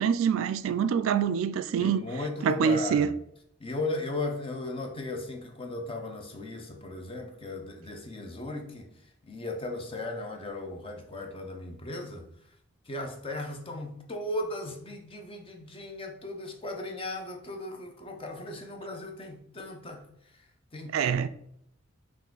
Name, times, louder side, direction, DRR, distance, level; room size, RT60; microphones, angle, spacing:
voice 1, 0.0-2.1 2.4-3.1 20.9-21.3, right 7 dB, 70° right, 0.3 m, -25 dB
voice 2, 1.8-3.1 3.6-8.9 9.2-12.3 12.9-20.0 20.7-21.3, left 2 dB, 25° left, 0.6 m, -36 dB
5.5 x 2.5 x 3.8 m
head